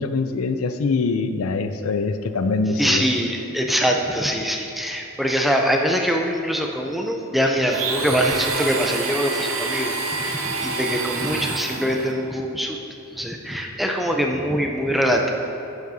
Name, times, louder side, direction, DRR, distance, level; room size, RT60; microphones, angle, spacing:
voice 1, 0.0-3.0, left 4 dB, 80° left, 9 dB, 0.4 m, -23 dB
voice 2, 2.8-12.8 13.1-15.3, equal, ahead, 1 dB, 0.5 m, -23 dB
Domestic sounds home sounds, 7.7-12.1, right 4 dB, 70° right, 0.8 m, -27 dB
10.5 x 7.4 x 2.7 m, 2.8 s
head